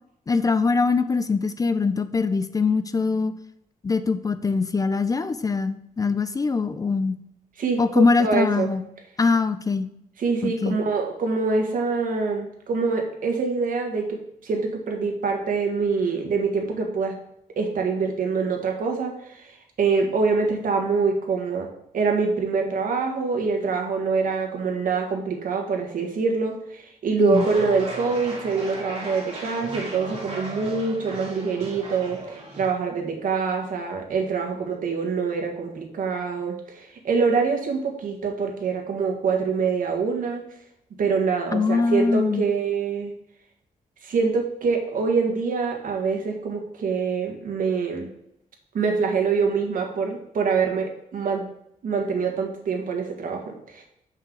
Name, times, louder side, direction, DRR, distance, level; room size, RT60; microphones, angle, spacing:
voice 1, 0.3-3.3 3.8-7.1 7.8-8.8 9.2-9.9 10.4-10.7 27.2-27.5 41.5-42.4, left 4 dB, 25° left, 11 dB, 0.4 m, -22 dB
voice 2, 7.6-8.7 10.2-17.1 17.5-21.7 21.9-40.4 41.0-43.1 44.0-48.1 48.7-51.4 51.8-53.8, right 4 dB, 75° right, 2 dB, 1.6 m, -25 dB
sound 1, 27.3-32.7, right 2 dB, 45° right, 2.3 m, -36 dB
7.5 x 5.5 x 3.9 m, 0.77 s
wide cardioid pair, 135°, 14 cm